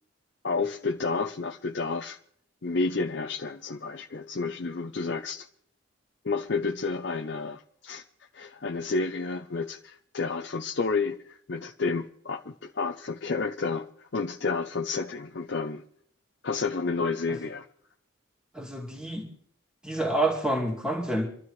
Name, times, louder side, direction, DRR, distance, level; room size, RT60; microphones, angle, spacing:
voice 1, 0.4-2.2 2.6-5.5 6.2-8.0 8.3-15.8 16.4-17.7, left 4 dB, 60° left, 0.6 m, -30 dB
voice 2, 18.5-19.3 19.8-21.3, right 1 dB, 5° right, 2.4 m, -28 dB
28.0 x 12.5 x 3.2 m
head